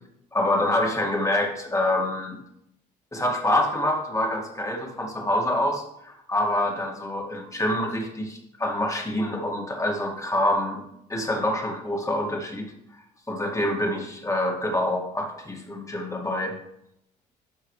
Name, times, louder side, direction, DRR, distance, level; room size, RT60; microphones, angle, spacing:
voice 1, 0.3-2.4 3.1-10.8 11.1-12.7 13.3-16.5, left 1 dB, 15° left, 1 dB, 2.1 m, -26 dB
12.5 x 4.9 x 3.3 m, 0.79 s
supercardioid pair, 70°, 20 cm